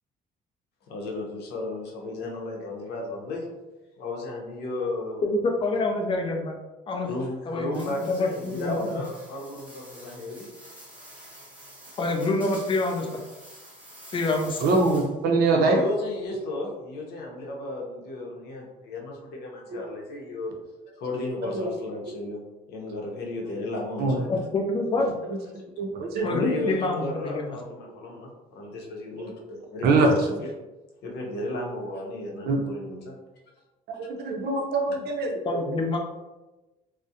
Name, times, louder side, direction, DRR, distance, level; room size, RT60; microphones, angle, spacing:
voice 1, 0.9-3.5 4.0-5.2 7.0-10.5 15.5-20.5 20.9-22.4 22.7-24.3 25.0-25.1 26.2-30.5 31.0-33.2 33.9-34.1, left 2 dB, 75° left, 0 dB, 0.7 m, -34 dB
voice 2, 5.2-6.6 6.9-7.1 7.5-9.0 12.0-13.2 14.1-14.6 24.3-25.1 26.2-27.6 35.4-36.0, left 2 dB, 30° left, 2 dB, 0.4 m, -26 dB
sound 1, 7.7-15.3, right 1 dB, 10° right, 0.7 m, -48 dB
voice 3, 14.6-15.8 19.7-19.8 21.5-21.7 24.0-24.1 25.8-26.3 29.2-29.3 29.8-30.1 32.5-32.6 33.9-35.6, right 3 dB, 70° right, 2 dB, 0.5 m, -23 dB
2.3 x 2.0 x 2.7 m, 1.1 s
cardioid pair, 110°, 17 cm